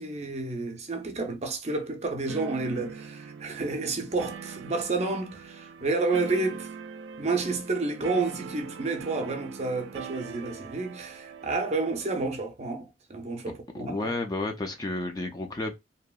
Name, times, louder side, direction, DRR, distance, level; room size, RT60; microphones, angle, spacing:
voice 1, 0.0-6.7 7.2-14.1, right 3 dB, 35° right, 0.5 m, -30 dB
sound 1, 2.3-12.3, right 5 dB, 85° right, 0.3 m, -42 dB
voice 2, 13.7-15.7, left 2 dB, 20° left, 0.4 m, -31 dB
2.7 x 2.4 x 2.3 m
head